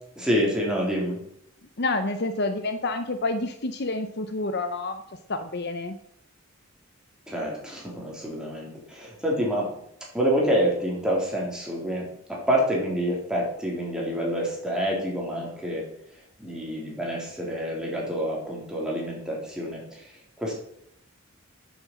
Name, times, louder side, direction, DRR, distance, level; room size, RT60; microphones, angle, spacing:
voice 1, 0.2-1.2 7.3-9.7 10.1-15.8 16.4-20.1 20.4-20.6, equal, 5° right, -3 dB, 3.6 m, -27 dB
voice 2, 1.8-5.0 5.3-6.0, left 2 dB, 50° left, 8 dB, 0.8 m, -28 dB
8.9 x 7.4 x 7.5 m, 0.73 s
head